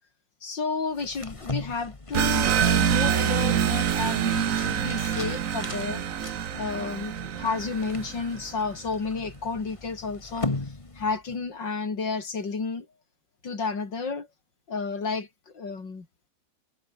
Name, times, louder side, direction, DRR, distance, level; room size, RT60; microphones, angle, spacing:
voice 1, 0.4-6.0 6.5-10.5 11.0-12.9 13.4-14.3 14.7-16.1, left 4 dB, 80° left, 4.1 m, -31 dB
sound 1, 0.9-11.4, left 2 dB, 20° left, 1.7 m, -39 dB
sound 2, 2.1-8.4, right 9 dB, 55° right, 1.2 m, -26 dB
omnidirectional pair, 1.9 m